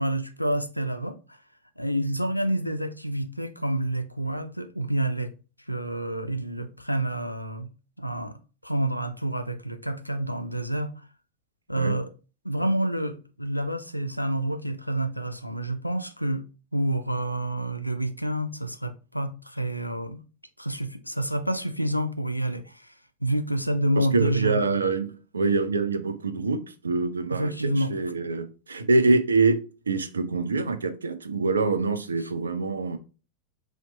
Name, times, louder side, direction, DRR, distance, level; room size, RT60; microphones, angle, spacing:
voice 1, 0.0-1.4 1.8-5.3 5.7-7.7 8.0-10.9 11.7-12.1 12.4-16.4 16.7-20.2 20.6-22.9 23.2-24.6 27.3-27.9, right 1 dB, 90° left, 0.3 m, -28 dB
voice 2, 24.0-29.6 29.9-33.0, right 3 dB, 75° right, 0.4 m, -25 dB
2.9 x 2.0 x 3.8 m
figure-of-eight pair, 90°, 0 cm